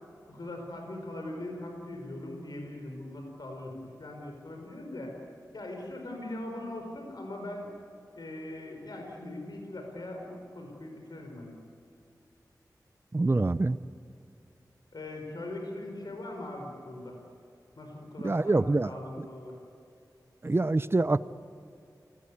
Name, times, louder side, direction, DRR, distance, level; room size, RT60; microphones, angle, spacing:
voice 1, 0.3-5.1 5.5-7.7 8.1-11.5 14.9-17.2 17.8-18.6 18.8-19.6, left 1 dB, 70° left, 2 dB, 5.0 m, -40 dB
voice 2, 13.1-13.8 18.2-19.3 20.4-21.2, right 2 dB, 35° right, 15 dB, 0.7 m, -26 dB
29.5 x 19.5 x 8.6 m, 2.6 s
wide cardioid pair, 90°, 7 cm